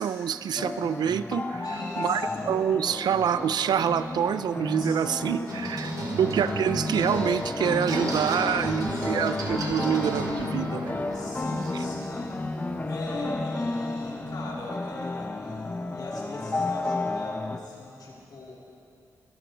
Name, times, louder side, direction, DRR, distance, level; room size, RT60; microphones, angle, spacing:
voice 1, 0.0-1.7 2.0-2.2 2.5-5.9 6.2-11.0, right 8 dB, 80° right, 13 dB, 0.5 m, -26 dB
sound 1, 0.6-17.6, left 2 dB, 25° left, 0.7 m, -32 dB
voice 2, 1.6-2.5 4.8-5.1 5.5-6.3 8.4-9.2 11.1-12.5 12.8-18.6, left 1 dB, 70° left, -4 dB, 3.4 m, -40 dB
sound 2, 5.5-13.1, right 2 dB, 60° right, 2.1 m, -35 dB
22.5 x 11.0 x 4.5 m, 2.7 s
cardioid pair, 85°, 7 cm